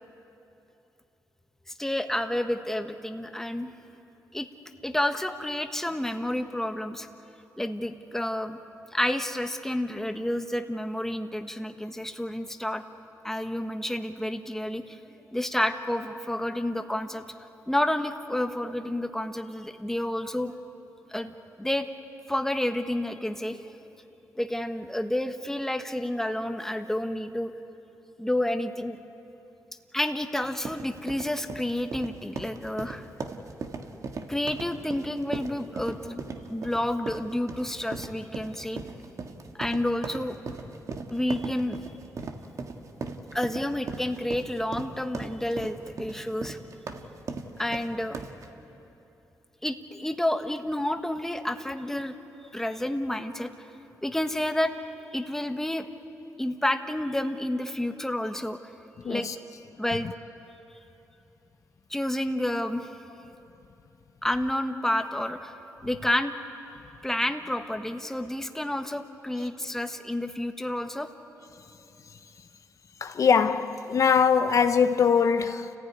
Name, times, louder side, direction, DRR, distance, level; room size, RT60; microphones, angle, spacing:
voice 1, 1.8-3.7 4.3-4.5 4.8-7.1 7.6-8.6 8.9-12.8 13.2-15.0 15.3-20.5 21.1-21.9 22.3-23.7 24.4-27.5 28.2-29.0 29.9-33.1 34.3-36.2 36.5-38.8 39.6-40.4 41.1-41.8 43.3-46.6 47.6-48.2 49.6-52.1 52.5-53.5 54.0-54.8 55.1-55.9 56.4-58.6 59.1-59.3 59.8-60.1 61.9-62.9 64.2-65.5 65.8-66.3 67.0-71.1, left 1 dB, 5° left, 1.4 m, -30 dB
sound 1, 30.4-48.5, right 4 dB, 60° right, 1.8 m, -38 dB
voice 2, 59.0-59.4 73.0-75.7, left 6 dB, 55° left, 0.8 m, -22 dB
30.0 x 15.5 x 9.6 m
cardioid pair, 75°, 6 cm